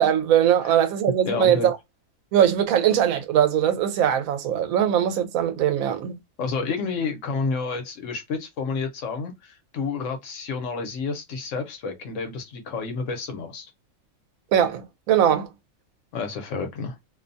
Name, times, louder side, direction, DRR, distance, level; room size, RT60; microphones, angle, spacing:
voice 1, 0.0-1.8 2.3-6.1 14.5-15.5, right 10 dB, 85° right, 1.0 m, -21 dB
voice 2, 1.2-1.7 6.4-13.7 16.1-17.0, left 4 dB, 70° left, 1.0 m, -30 dB
2.6 x 2.2 x 2.6 m
omnidirectional pair, 1.4 m